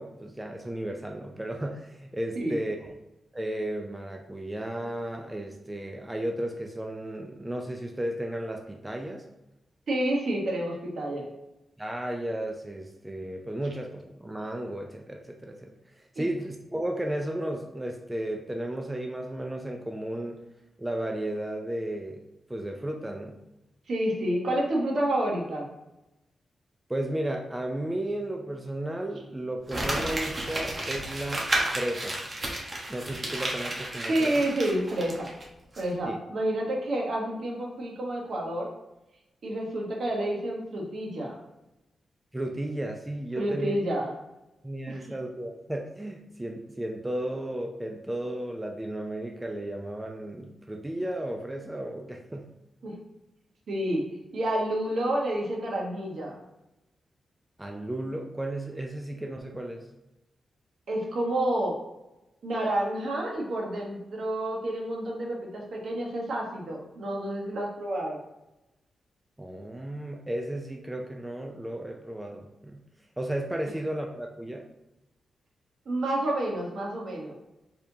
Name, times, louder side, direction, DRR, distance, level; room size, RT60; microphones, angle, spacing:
voice 1, 0.0-2.9 3.3-9.2 11.8-15.7 16.2-20.4 20.8-22.2 22.5-23.4 26.9-32.2 32.9-34.4 36.0-36.2 42.3-43.8 44.6-52.5 57.6-59.8 69.4-72.8 73.2-74.6, right 1 dB, 15° right, 2 dB, 0.4 m, -34 dB
voice 2, 9.9-11.2 16.2-16.3 23.9-25.7 34.1-35.3 35.8-38.7 39.4-41.3 43.4-44.1 44.9-45.1 52.8-52.9 53.7-54.0 54.3-56.4 60.9-61.8 62.4-68.2 75.9-77.3, right 1 dB, 65° right, -1 dB, 1.1 m, -29 dB
Crumpling crinkling, 29.7-35.4 35.7-35.8, right 1 dB, 35° right, 1.0 m, -32 dB
4.4 x 3.6 x 2.7 m, 0.94 s
cardioid pair, 95°, 0 cm